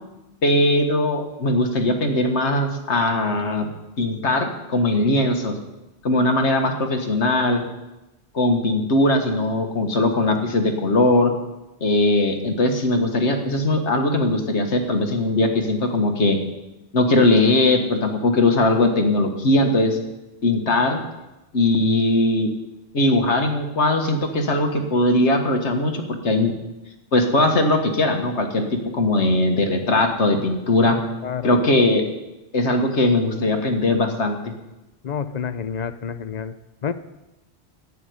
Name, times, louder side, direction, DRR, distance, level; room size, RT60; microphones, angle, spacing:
voice 1, 0.4-3.7 4.0-5.6 6.0-7.6 8.3-11.3 11.8-16.4 16.9-20.0 20.4-21.0 21.5-22.5 22.9-26.5 27.1-28.6 28.9-31.0 31.4-32.0 32.5-34.4, left 2 dB, 80° left, 4 dB, 1.8 m, -20 dB
voice 2, 35.0-36.6 36.8-36.9, left 7 dB, 45° left, 13 dB, 0.7 m, -28 dB
11.0 x 8.5 x 9.5 m, 1.0 s
omnidirectional pair, 1.2 m